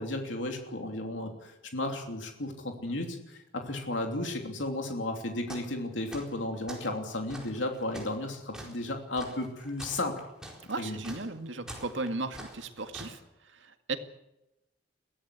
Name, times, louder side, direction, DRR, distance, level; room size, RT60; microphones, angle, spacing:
voice 1, 0.0-10.1 10.8-11.0, left 2 dB, 80° left, 3 dB, 3.1 m, -34 dB
sound 1, 5.5-5.8 6.1-6.9 7.3-13.2, right 1 dB, 5° right, 4.4 m, -45 dB
voice 2, 10.7-13.2 13.4-14.0, right 3 dB, 75° right, 7 dB, 2.0 m, -36 dB
23.0 x 16.5 x 8.4 m, 0.91 s
head